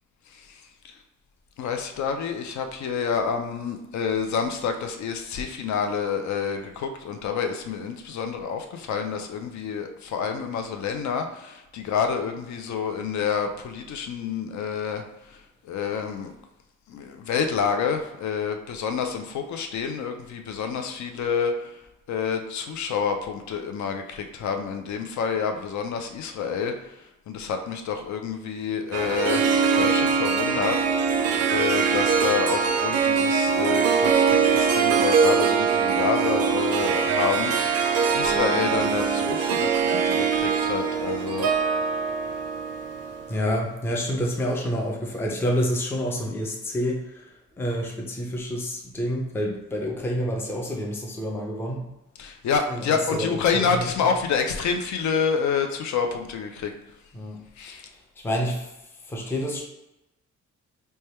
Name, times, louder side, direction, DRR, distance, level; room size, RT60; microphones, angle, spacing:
voice 1, 0.3-1.0 1.6-15.0 15.3-15.4 15.6-16.4 16.9-21.8 22.1-27.0 27.3-29.5 29.7-30.8 31.5-37.5 38.1-41.5 52.2-56.7 57.6-57.9, left 6 dB, 70° left, 5 dB, 0.5 m, -28 dB
Harp, 28.9-43.4, right 6 dB, 55° right, 0.4 m, -22 dB
voice 2, 43.3-47.3 47.6-51.9 52.7-53.9 57.1-57.4 57.8-58.7 59.1-59.6, equal, 10° left, -1 dB, 0.4 m, -28 dB
3.3 x 2.2 x 4.2 m, 0.96 s
wide cardioid pair, 180°, 30 cm